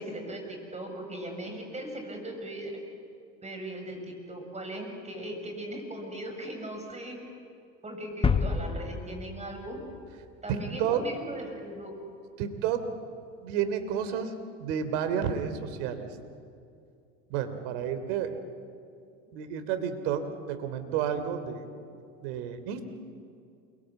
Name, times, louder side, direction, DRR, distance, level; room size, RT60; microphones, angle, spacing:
voice 1, 0.0-2.7 3.4-7.2 7.8-9.8 10.4-11.9, right 1 dB, 15° right, 3 dB, 7.4 m, -38 dB
sound 1, 8.2-10.9, left 5 dB, 15° left, 1.3 m, -30 dB
voice 2, 10.5-11.0 12.4-12.9 13.4-14.3 14.6-16.1 17.3-18.4 19.3-21.7 22.2-22.9, right 8 dB, 70° right, 9 dB, 3.2 m, -31 dB
28.5 x 22.5 x 9.1 m, 2.4 s
hypercardioid pair, 100°, 38 cm